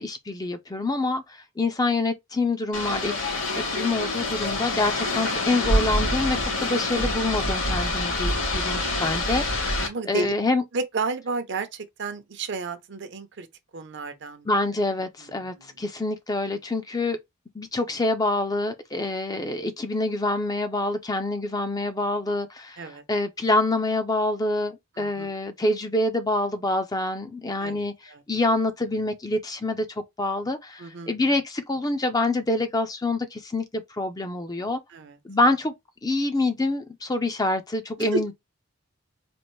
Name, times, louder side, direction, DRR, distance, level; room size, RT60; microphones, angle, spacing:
voice 1, 0.0-3.3 3.5-10.6 14.5-17.2 17.5-34.8 35.2-35.7 36.0-38.3, left 2 dB, 20° left, 0.5 m, -26 dB
sound 1, 2.7-9.9, left 2 dB, 75° left, 2.0 m, -26 dB
voice 2, 9.7-10.3 10.7-13.5 13.7-14.5 15.2-15.7 22.8-23.0 25.0-25.3 27.6-27.8 28.1-28.2 30.8-31.1 34.9-35.2 38.0-38.2, right 3 dB, 55° right, 0.7 m, -32 dB
4.3 x 2.5 x 3.1 m
head